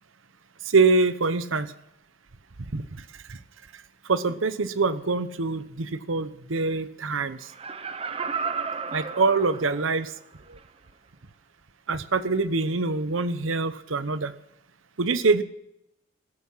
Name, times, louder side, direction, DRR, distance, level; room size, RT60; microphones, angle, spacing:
voice 1, 0.7-1.7 2.7-3.0 3.3-3.4 4.1-7.4 8.9-10.1 10.5-10.6 11.9-14.3 15.0-15.4, right 4 dB, 80° right, 13 dB, 0.9 m, -24 dB
Laughter, 7.4-10.1 10.6-10.7, right 5 dB, 30° right, 0.7 m, -33 dB
14.5 x 14.5 x 5.6 m, 0.81 s
head